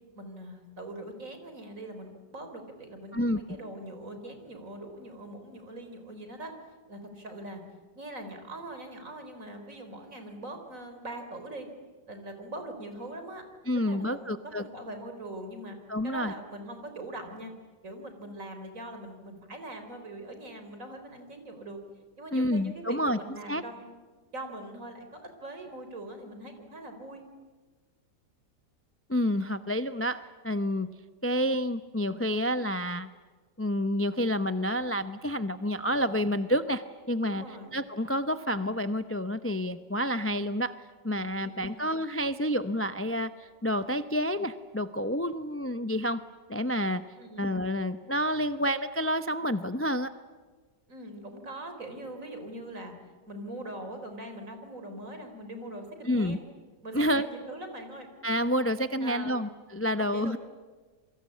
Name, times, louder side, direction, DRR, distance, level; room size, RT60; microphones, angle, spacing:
voice 1, 0.1-6.5 6.9-7.6 7.9-11.7 12.1-13.4 13.7-15.8 16.0-17.5 17.8-21.8 22.2-23.9 24.3-27.2 37.3-37.7 41.4-41.8 47.2-47.4 50.9-52.9 53.3-56.5 56.8-58.1 59.0-59.4 60.0-60.4, right 1 dB, 50° right, 6 dB, 4.4 m, -42 dB
voice 2, 13.7-14.6 15.9-16.3 22.3-23.2 23.5-23.6 29.1-30.9 31.2-33.1 33.6-37.4 37.7-40.7 41.0-46.2 46.5-47.0 47.4-50.1 56.0-56.4 56.9-57.3 58.2-60.4, equal, 20° left, 11 dB, 0.3 m, -29 dB
28.0 x 23.5 x 8.5 m, 1.4 s
omnidirectional pair, 1.8 m